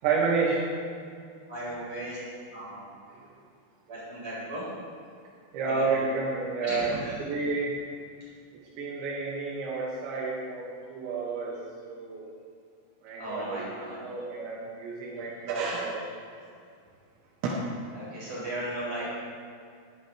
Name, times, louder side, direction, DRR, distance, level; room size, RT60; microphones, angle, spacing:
voice 1, 0.0-0.7 3.1-3.2 5.5-7.8 8.8-11.6 11.9-12.2 13.0-13.7 14.0-16.0 17.4-17.5, right 4 dB, 80° right, -6 dB, 4.0 m, -30 dB
voice 2, 1.5-2.2 2.5-2.8 3.9-4.7 5.6-5.8 6.6-7.2 13.1-14.3 16.0-16.1 17.9-19.0, right 1 dB, 35° right, -8 dB, 5.4 m, -36 dB
19.5 x 14.0 x 3.2 m, 2.3 s
omnidirectional pair, 5.2 m